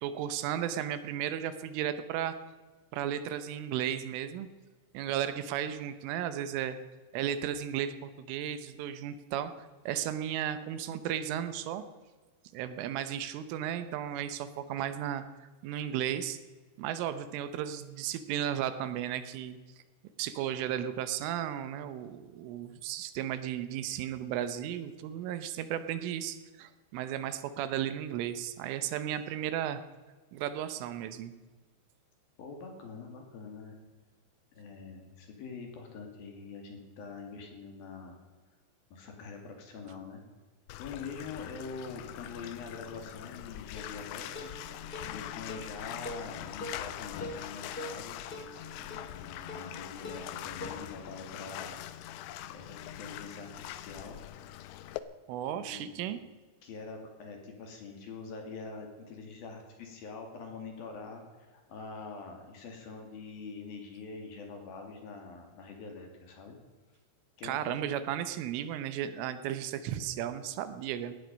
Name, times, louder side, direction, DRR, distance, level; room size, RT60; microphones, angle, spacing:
voice 1, 0.0-2.4 2.9-4.5 5.0-6.8 7.1-9.5 9.9-11.8 12.5-15.2 15.6-16.4 16.8-19.6 20.2-29.8 30.3-31.3 55.3-56.2 67.4-71.1, right 10 dB, 80° right, 12 dB, 3.5 m, -34 dB
voice 2, 32.4-33.8 34.5-38.2 38.9-40.2 40.8-44.5 45.1-48.2 48.7-51.8 52.5-54.2 55.6-56.0 56.6-66.6 67.4-67.9, left 4 dB, 55° left, 3 dB, 3.7 m, -44 dB
Bathtub (filling or washing), 40.7-55.0, left 13 dB, 80° left, 2.5 m, -43 dB
sound 1, 43.8-50.7, equal, 35° left, 0.9 m, -45 dB
18.0 x 14.0 x 5.3 m, 1.3 s
omnidirectional pair, 5.7 m